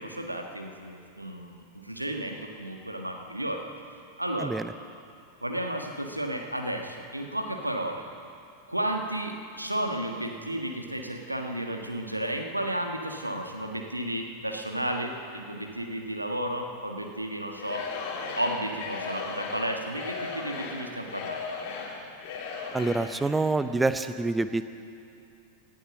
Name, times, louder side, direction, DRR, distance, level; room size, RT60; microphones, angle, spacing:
voice 1, 0.0-3.6 4.2-4.5 5.4-8.0 8.7-17.8 18.4-21.5, right 1 dB, 85° right, 3 dB, 1.5 m, -33 dB
voice 2, 4.4-4.7 22.7-24.6, right 3 dB, 10° right, 12 dB, 0.7 m, -26 dB
Singing / Crowd, 17.5-23.2, left 4 dB, 45° left, 2.6 m, -36 dB
18.0 x 12.5 x 6.4 m, 2.7 s
figure-of-eight pair, 90°, 0 cm